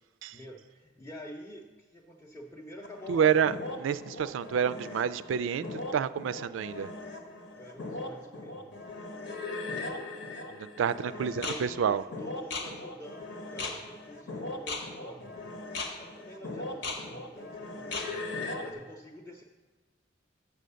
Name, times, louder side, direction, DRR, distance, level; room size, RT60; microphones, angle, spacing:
voice 1, 0.3-3.5 7.6-8.7 11.1-15.6 16.0-18.2 18.6-19.4, equal, 10° left, -3 dB, 0.6 m, -47 dB
sound 1, 2.8-18.7, left 2 dB, 65° left, 1.1 m, -39 dB
voice 2, 3.1-3.5 3.8-6.9 10.6-12.0, right 8 dB, 85° right, 15 dB, 0.3 m, -28 dB
6.8 x 6.3 x 6.7 m, 1.3 s
head